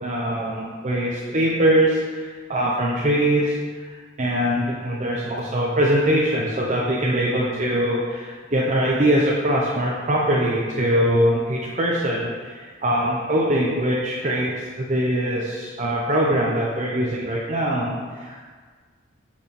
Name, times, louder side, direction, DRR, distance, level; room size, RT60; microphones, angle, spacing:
voice 1, 0.0-3.6 3.8-18.4, right 1 dB, 35° right, -4 dB, 0.9 m, -22 dB
8.9 x 6.3 x 4.3 m, 1.5 s
head